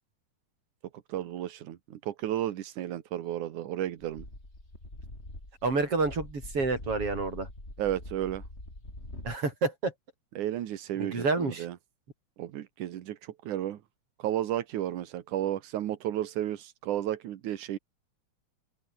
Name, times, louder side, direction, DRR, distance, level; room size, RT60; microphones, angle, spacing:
voice 1, 1.1-4.3 7.8-8.4 10.4-11.8 12.4-13.8 14.2-17.8, right 12 dB, 85° right, 2.8 m, -33 dB
sound 1, 4.0-9.4, left 1 dB, 20° left, 7.4 m, -44 dB
voice 2, 5.6-7.5 9.2-9.9 11.0-11.7, right 3 dB, 50° right, 7.3 m, -29 dB
open air
omnidirectional pair, 3.4 m